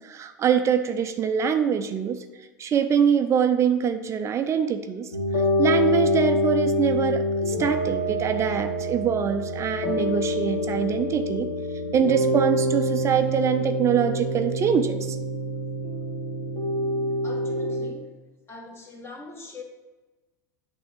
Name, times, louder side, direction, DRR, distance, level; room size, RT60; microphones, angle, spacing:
voice 1, 0.0-2.2 2.6-5.1 5.6-11.5 11.9-15.2, right 7 dB, 30° right, 8 dB, 0.5 m, -24 dB
sound 1, 5.1-17.9, equal, 70° left, 1.8 m, -26 dB
voice 2, 17.2-18.1 18.5-19.6, left 2 dB, 25° left, 2 dB, 1.5 m, -41 dB
8.4 x 3.5 x 6.1 m, 1.2 s
figure-of-eight pair, 85°, 10 cm